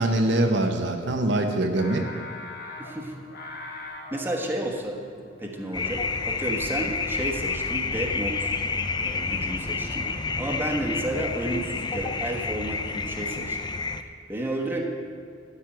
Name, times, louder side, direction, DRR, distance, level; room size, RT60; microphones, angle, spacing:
voice 1, 0.0-2.1, right 1 dB, 65° right, 4 dB, 1.0 m, -23 dB
Singing, 1.8-7.0, left 3 dB, 60° left, 2.0 m, -42 dB
voice 2, 2.8-3.1 4.1-5.0 5.4-8.5 8.9-13.6 14.3-14.8, right 1 dB, 10° right, 0 dB, 1.3 m, -31 dB
sound 1, 5.7-14.0, left 4 dB, 25° left, 0.5 m, -29 dB
13.0 x 5.5 x 9.0 m, 2.1 s
head